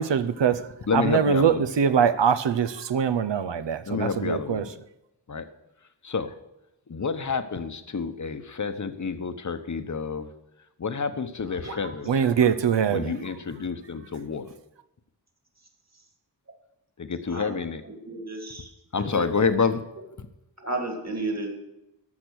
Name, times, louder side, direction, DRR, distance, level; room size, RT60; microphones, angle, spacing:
voice 1, 0.0-4.7 12.1-13.1, right 7 dB, 80° right, 12 dB, 0.8 m, -23 dB
voice 2, 0.9-1.6 3.9-4.7 5.3-5.5 6.0-6.3 6.9-10.3 10.8-12.1 12.9-14.5 17.0-17.8 18.9-19.8 20.2-20.3, left 5 dB, 45° left, 9 dB, 0.9 m, -28 dB
voice 3, 17.9-18.7 19.0-19.5 20.6-21.5, right 2 dB, 40° right, 3 dB, 2.4 m, -33 dB
13.5 x 6.0 x 6.3 m, 0.91 s
wide cardioid pair, 95°, 42 cm